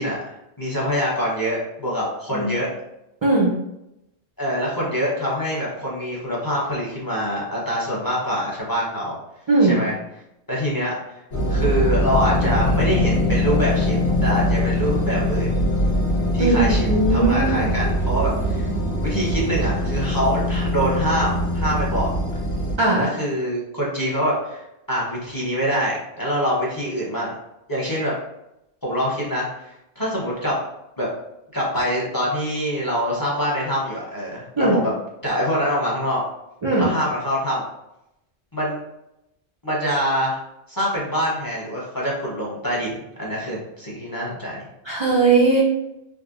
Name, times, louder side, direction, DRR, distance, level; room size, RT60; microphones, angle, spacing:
voice 1, 0.0-2.7 4.4-9.2 9.6-9.9 10.5-11.2 11.5-15.5 16.3-18.7 19.0-22.1 22.9-27.3 27.7-28.1 28.8-30.5 31.0-31.1 31.5-34.9 35.2-36.2 36.8-37.6 38.5-38.8 39.6-40.4 40.7-44.7, equal, 20° left, -6 dB, 0.7 m, -25 dB
voice 2, 3.2-3.5 9.5-9.8 16.4-16.6 16.9-17.7 22.8-23.1 34.6-34.8 36.6-36.9 44.8-45.6, right 3 dB, 50° right, -4 dB, 0.3 m, -18 dB
sound 1, 11.3-22.7, equal, 70° left, 1.1 m, -22 dB
3.5 x 2.1 x 2.4 m, 0.86 s
omnidirectional pair, 1.1 m